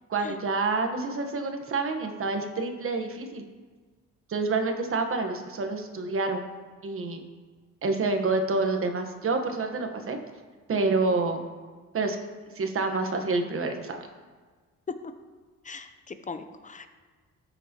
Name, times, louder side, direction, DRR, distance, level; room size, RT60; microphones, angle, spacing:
voice 1, 0.1-3.4 4.3-6.4 6.8-7.2 7.8-10.2 10.7-11.4 11.9-12.2 12.5-14.0, right 3 dB, 45° right, 5 dB, 1.2 m, -28 dB
voice 2, 15.6-16.9, left 4 dB, 25° left, 9 dB, 0.7 m, -40 dB
14.0 x 6.4 x 3.0 m, 1.4 s
cardioid pair, 90°, 30 cm